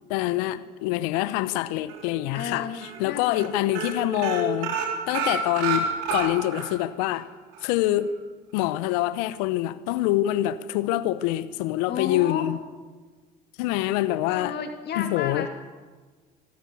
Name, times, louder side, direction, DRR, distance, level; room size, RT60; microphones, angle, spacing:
voice 1, 0.1-2.7 3.0-4.8 5.1-7.3 7.6-8.1 8.5-12.6 13.6-14.5 15.0-15.5, left 14 dB, 75° left, 0.9 m, -25 dB
sound 1, 1.9-2.5 2.8-3.0 3.3-3.5 3.7-6.7 7.1-7.2 7.5-7.6, right 6 dB, 75° right, 3.6 m, -29 dB
voice 2, 2.3-3.5 11.9-12.5 14.3-15.5, left 8 dB, 55° left, 2.7 m, -32 dB
25.0 x 14.0 x 8.4 m
hypercardioid pair, 70°, 21 cm